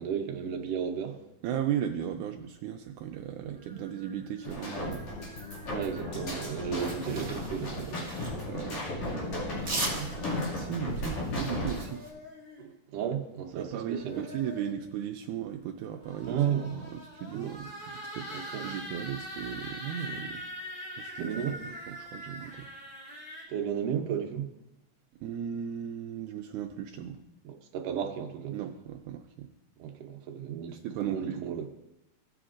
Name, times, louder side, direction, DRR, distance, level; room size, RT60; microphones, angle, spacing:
voice 1, 0.0-1.3 3.4-3.6 5.7-8.4 12.6-14.3 16.3-16.7 17.3-17.6 18.3-18.7 21.2-21.6 23.5-24.5 27.4-28.6 29.8-31.6, right 8 dB, 65° right, 3 dB, 1.7 m, -34 dB
voice 2, 1.4-5.1 8.5-12.0 13.5-20.5 21.0-21.5 21.9-22.7 25.2-27.2 28.5-29.5 30.8-31.7, right 9 dB, 80° right, 4 dB, 1.9 m, -36 dB
sound 1, 3.5-7.3 8.5-10.8 11.6-12.6 13.7-14.9 15.9-23.4, equal, 30° left, 2.8 m, -44 dB
sound 2, 4.4-11.9, left 2 dB, 60° left, 3.5 m, -35 dB
sound 3, 6.7-8.4 9.6-12.1, right 2 dB, 45° right, 0.8 m, -39 dB
16.5 x 5.9 x 2.5 m, 0.93 s
omnidirectional pair, 3.7 m